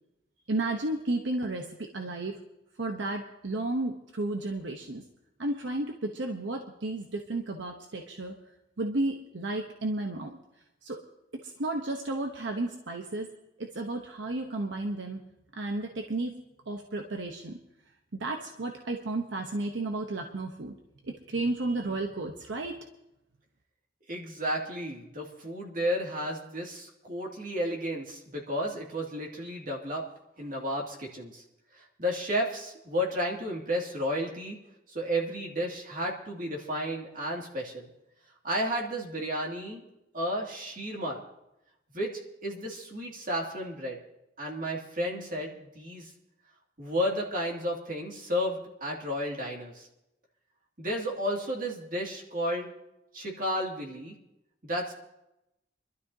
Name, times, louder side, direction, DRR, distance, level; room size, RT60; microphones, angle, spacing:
voice 1, 0.5-2.4 2.8-5.0 5.4-8.3 8.8-10.4 10.8-11.0 11.4-13.3 13.6-15.2 15.6-16.4 16.7-17.6 18.2-20.8 21.0-22.8, right 2 dB, 90° right, 3 dB, 0.9 m, -33 dB
voice 2, 24.1-30.0 30.4-31.4 31.7-34.6 34.9-37.9 38.4-39.8 40.1-41.2 41.9-42.1 42.4-44.0 44.4-46.1 46.8-49.9 50.8-52.7 53.1-54.1 54.6-54.9, equal, 50° right, -1 dB, 2.3 m, -32 dB
25.0 x 12.5 x 2.8 m, 0.89 s
head